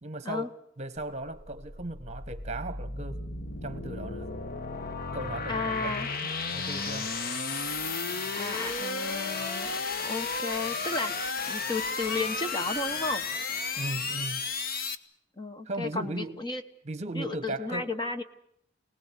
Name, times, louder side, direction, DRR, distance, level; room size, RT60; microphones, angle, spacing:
voice 1, 0.0-3.2 3.6-4.3 5.1-5.9 6.2-7.1 13.8-14.4 15.6-16.4 16.8-17.9, right 2 dB, 35° right, 13 dB, 1.5 m, -37 dB
sound 1, 1.0-15.0, left 4 dB, 50° left, 1.2 m, -33 dB
voice 2, 5.5-6.1 8.3-13.3 15.4-16.6 17.1-18.2, left 2 dB, 25° left, 8 dB, 1.2 m, -33 dB
26.5 x 19.0 x 8.2 m, 0.70 s
head